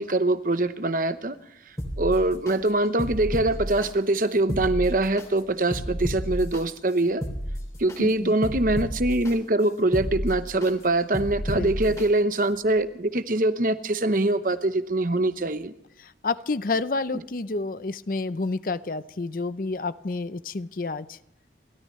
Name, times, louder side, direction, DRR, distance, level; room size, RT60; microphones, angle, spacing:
voice 1, 0.0-1.4 2.0-7.2 7.8-15.7, right 2 dB, 50° right, 11 dB, 0.9 m, -23 dB
sound 1, 1.8-2.5 3.0-3.9 4.4-5.3 5.7-6.6 7.1-8.0 8.4-9.3 9.8-10.7 11.1-12.0 12.5-12.6, equal, 20° left, 2.8 m, -31 dB
voice 2, 8.0-8.3 11.5-12.0 16.0-21.2, left 3 dB, 50° left, 14 dB, 0.6 m, -30 dB
29.5 x 13.5 x 3.2 m, 0.85 s
head